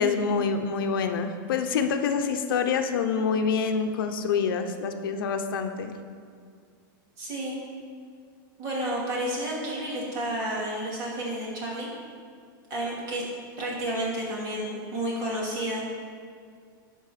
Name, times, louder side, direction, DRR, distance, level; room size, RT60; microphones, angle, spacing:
voice 1, 0.0-5.9, left 5 dB, 80° left, 7 dB, 0.7 m, -26 dB
voice 2, 7.2-7.6 8.6-11.9 12.7-13.2 13.6-15.8, right 1 dB, 35° right, -4 dB, 2.2 m, -31 dB
12.0 x 4.5 x 4.9 m, 2.2 s
supercardioid pair, 165°, 11 cm